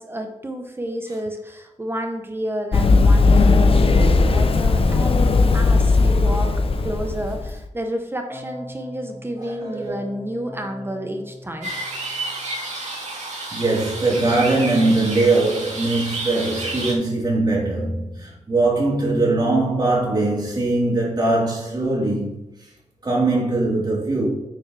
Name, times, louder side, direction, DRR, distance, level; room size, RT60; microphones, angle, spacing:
voice 1, 0.0-6.5 6.8-11.7, equal, 20° right, 0.8 m, -30 dB
Run, 2.7-7.5, left 3 dB, 50° left, 0.6 m, -17 dB
Keyboard (musical), 4.4-6.7 8.3-12.6, equal, 15° left, 2.9 m, -40 dB
voice 2, 9.4-9.9 13.5-22.4 23.0-24.3, right 2 dB, 35° right, 3.8 m, -21 dB
sound 1, 11.6-16.9, right 2 dB, 75° right, 3.7 m, -30 dB
9.2 x 8.7 x 3.3 m
wide cardioid pair, 160°, 12 cm